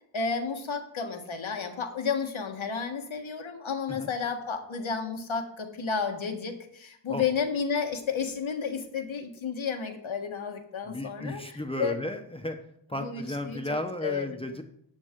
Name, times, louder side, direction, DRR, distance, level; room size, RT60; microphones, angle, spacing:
voice 1, 0.1-12.0 12.9-14.4, left 5 dB, 75° left, 5 dB, 1.6 m, -32 dB
voice 2, 10.8-12.6 12.9-14.6, left 1 dB, 10° left, 5 dB, 1.0 m, -34 dB
12.0 x 8.0 x 3.7 m, 0.71 s
cardioid pair, 55°, 48 cm